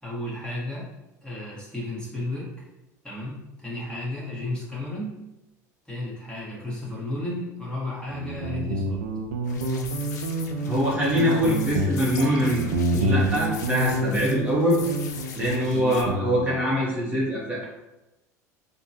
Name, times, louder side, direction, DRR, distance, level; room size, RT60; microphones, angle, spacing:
voice 1, 0.0-0.9 1.2-2.5 3.0-5.2 5.9-9.0 15.4-15.8, left 1 dB, 10° left, -6 dB, 1.4 m, -33 dB
Guitar, 8.1-16.6, right 2 dB, 80° right, 0.4 m, -28 dB
sound 1, 9.4-16.0, left 6 dB, 80° left, 0.4 m, -41 dB
voice 2, 10.6-12.6 12.9-14.8 15.3-17.6, equal, 15° right, -7 dB, 1.0 m, -24 dB
3.6 x 2.2 x 2.7 m, 0.98 s
hypercardioid pair, 75°, 9 cm